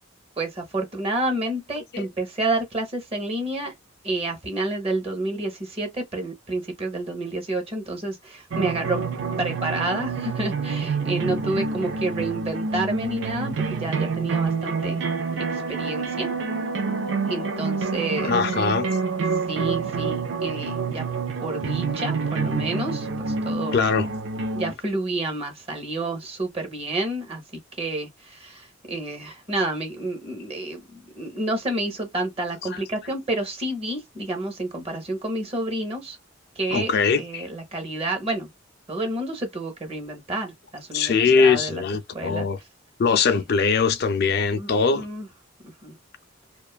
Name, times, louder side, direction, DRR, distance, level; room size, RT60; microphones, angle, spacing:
voice 1, 0.4-3.7 4.0-9.0 9.4-15.0 15.4-16.3 17.3-18.4 19.5-21.0 21.4-23.8 24.5-27.4 27.8-36.2 36.6-38.5 38.9-41.8 42.1-42.5 44.5-45.3 45.6-46.0, right 2 dB, 30° right, 0.7 m, -29 dB
sound 1, 8.5-24.7, right 4 dB, 65° right, 0.5 m, -27 dB
voice 2, 18.2-18.9 23.7-24.1 32.7-32.8 36.7-37.5 40.9-42.6 43.0-45.1, left 5 dB, 50° left, 0.4 m, -21 dB
2.5 x 2.3 x 2.2 m
head